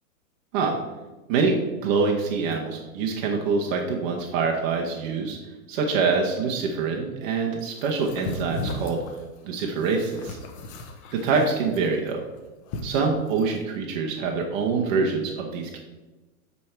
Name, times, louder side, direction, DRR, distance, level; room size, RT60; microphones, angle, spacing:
voice 1, 1.8-5.4 5.7-9.0 9.4-10.4 11.1-12.2 12.8-15.8, right 4 dB, 35° right, 0 dB, 0.8 m, -25 dB
sound 1, 7.7-13.6, left 2 dB, 25° left, 0.6 m, -37 dB
9.4 x 3.4 x 4.4 m, 1.2 s
supercardioid pair, 155°, 43 cm